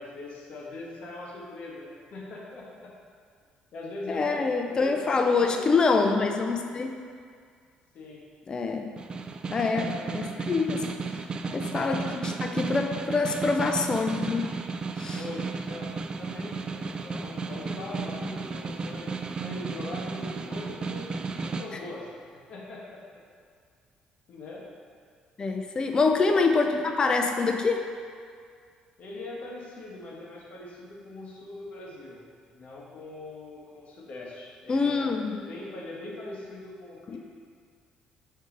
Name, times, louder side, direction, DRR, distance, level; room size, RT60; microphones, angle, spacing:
voice 1, 0.0-2.9 3.7-5.8 7.9-8.3 9.6-10.4 11.8-12.1 15.1-23.0 24.3-24.7 29.0-32.2 32.5-37.2, left 2 dB, 60° left, -3 dB, 1.3 m, -41 dB
voice 2, 4.1-6.9 8.5-8.9 9.5-9.9 10.1-10.8 11.5-14.4 15.0-15.2 25.4-27.8 34.7-35.4, left 4 dB, 30° left, 4 dB, 0.4 m, -25 dB
Snare drum, 9.0-21.7, right 4 dB, 35° right, 0.3 m, -34 dB
5.3 x 3.8 x 5.2 m, 2.1 s
cardioid pair, 95°, 3 cm